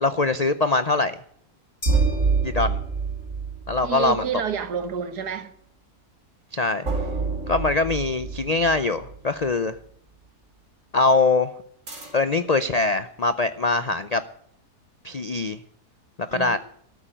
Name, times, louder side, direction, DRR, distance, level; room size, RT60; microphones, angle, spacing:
voice 1, 0.0-1.2 2.4-2.8 3.7-4.3 6.5-6.9 7.5-9.8 10.9-11.5 12.1-14.2 15.0-15.6 16.2-16.6, left 3 dB, 80° left, 0.3 m, -22 dB
sound 1, 1.8-3.3, left 3 dB, 20° left, 1.1 m, -41 dB
sound 2, 1.8-4.6 6.8-9.5 11.9-12.5, right 4 dB, 50° right, 3.9 m, -27 dB
voice 2, 3.8-5.5 16.3-16.6, right 7 dB, 90° right, 1.9 m, -29 dB
13.5 x 8.6 x 9.0 m
omnidirectional pair, 1.7 m